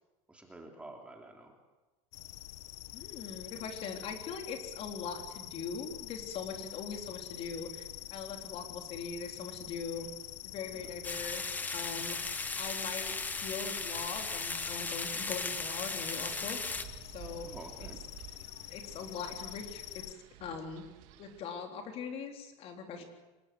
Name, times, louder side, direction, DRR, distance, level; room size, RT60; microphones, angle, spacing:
voice 1, 0.3-1.6 10.7-10.9 17.4-18.0 23.0-23.1, right 2 dB, 5° right, 2 dB, 2.9 m, -49 dB
sound 1, 2.1-20.1, left 17 dB, 75° left, 0.9 m, -46 dB
voice 2, 2.9-10.1 10.4-16.6 17.0-17.5 18.7-20.8 21.2-23.0, left 5 dB, 40° left, 4 dB, 3.7 m, -41 dB
sound 2, 11.0-16.8, left 3 dB, 10° left, 1.2 m, -37 dB
Wind, 14.9-21.4, right 13 dB, 60° right, 1.8 m, -53 dB
25.0 x 19.5 x 7.8 m, 1.2 s
supercardioid pair, 155°, 16 cm